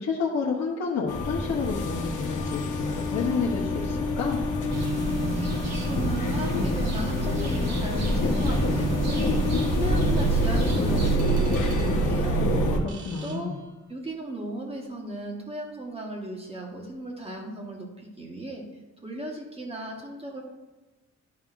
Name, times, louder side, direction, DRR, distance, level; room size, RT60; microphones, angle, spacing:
voice 1, 0.0-4.4 12.7-13.6, left 5 dB, 60° left, -4 dB, 0.9 m, -30 dB
sound 1, 1.1-12.8, equal, 85° left, 1.0 m, -26 dB
sound 2, 4.7-11.2, right 2 dB, 60° right, 1.2 m, -33 dB
voice 2, 5.2-9.3 9.7-12.5 13.2-13.5 13.9-18.6 19.0-20.4, right 1 dB, 20° right, 0 dB, 1.2 m, -36 dB
sound 3, 11.2-14.2, right 5 dB, 75° right, 1.1 m, -48 dB
11.5 x 5.4 x 2.5 m, 1.2 s
wide cardioid pair, 175°, 30 cm